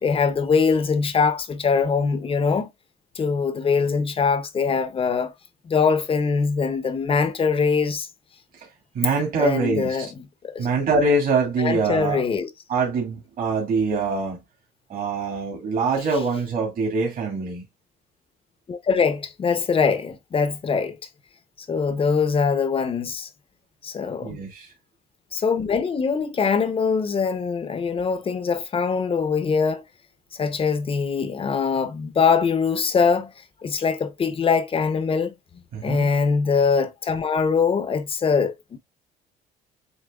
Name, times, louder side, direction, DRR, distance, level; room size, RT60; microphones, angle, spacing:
voice 1, 0.0-2.7 3.1-5.3 5.6-8.1 9.4-10.7 11.6-12.5 18.7-21.0 21.7-23.3 23.8-24.4 25.3-29.8 30.3-33.3 33.6-35.3 35.8-38.8, left 5 dB, 35° left, 0.8 m, -22 dB
voice 2, 8.9-10.1 10.6-12.2 12.7-14.4 14.9-17.6 24.2-24.7 35.7-36.1, right 3 dB, 60° right, 2.4 m, -24 dB
7.9 x 2.7 x 2.4 m
cardioid pair, 110°, 17 cm